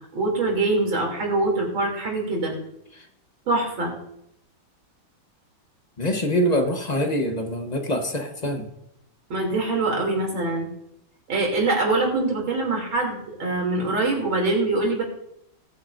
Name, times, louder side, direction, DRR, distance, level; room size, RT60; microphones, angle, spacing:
voice 1, 0.1-2.5 3.5-3.9 9.3-10.7 11.3-15.0, right 2 dB, 70° right, 0 dB, 3.8 m, -24 dB
voice 2, 6.0-8.7, equal, 25° left, 4 dB, 0.9 m, -24 dB
21.0 x 9.0 x 2.6 m, 0.78 s
omnidirectional pair, 2.2 m